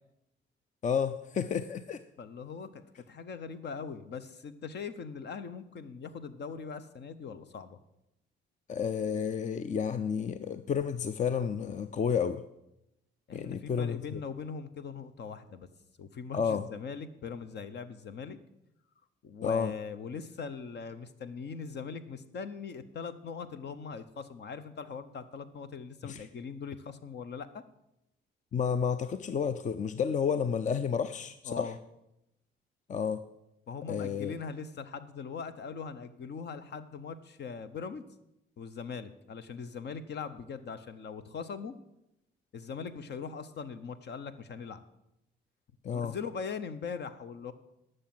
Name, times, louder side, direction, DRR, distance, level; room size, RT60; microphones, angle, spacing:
voice 1, 0.8-2.0 8.7-12.4 13.3-14.2 16.3-16.7 19.4-19.7 26.0-26.2 28.5-31.7 32.9-33.2 33.9-34.3 45.8-46.2, left 7 dB, 40° left, 12 dB, 0.5 m, -31 dB
voice 2, 2.2-7.8 13.3-15.7 16.0-18.4 19.2-27.6 31.5-31.8 33.7-38.0 38.6-41.8 42.5-44.8 45.9-47.5, left 5 dB, 60° left, 12 dB, 0.9 m, -41 dB
11.5 x 6.6 x 7.7 m, 0.86 s
cardioid pair, 90°, 20 cm